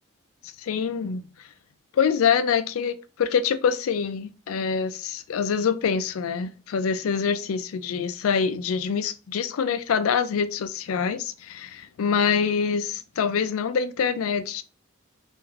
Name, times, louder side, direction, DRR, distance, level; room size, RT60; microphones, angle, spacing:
voice 1, 0.6-1.2 1.9-14.6, left 6 dB, 85° left, 0.4 m, -25 dB
3.2 x 2.5 x 2.4 m
head